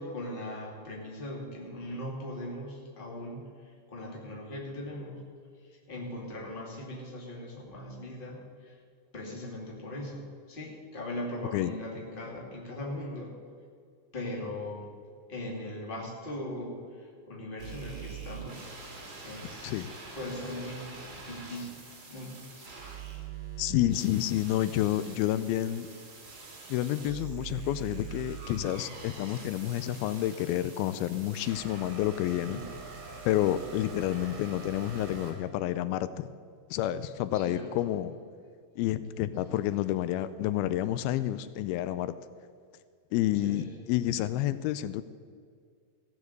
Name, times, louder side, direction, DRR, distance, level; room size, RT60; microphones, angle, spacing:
voice 1, 0.0-5.2 5.7-8.8 9.1-13.3 14.1-14.9 15.3-18.7 19.2-19.9 20.1-20.9 21.3-22.7 32.4-32.7 37.3-37.9 43.4-43.7, left 1 dB, 15° left, -2 dB, 2.0 m, -39 dB
sound 1, 17.6-35.3, right 5 dB, 35° right, 2.7 m, -44 dB
voice 2, 23.6-25.9 26.7-32.6 33.3-36.3 36.7-38.1 38.8-42.1 43.1-45.0, left 13 dB, 85° left, 14 dB, 2.4 m, -29 dB
15.5 x 7.2 x 8.0 m, 2.1 s
omnidirectional pair, 4.3 m